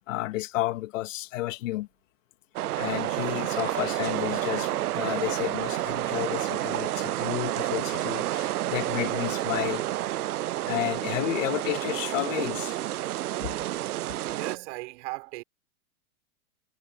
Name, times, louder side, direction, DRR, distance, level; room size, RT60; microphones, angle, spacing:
voice 1, 0.1-1.9 2.8-9.8 10.7-12.9 13.4-13.5, left 16 dB, 60° left, 2.4 m, -31 dB
sound 1, 2.6-14.6, right 14 dB, 90° right, 0.6 m, -30 dB
voice 2, 14.3-15.4, right 23 dB, 50° right, 5.4 m, -36 dB
hypercardioid pair, 130°, 43 cm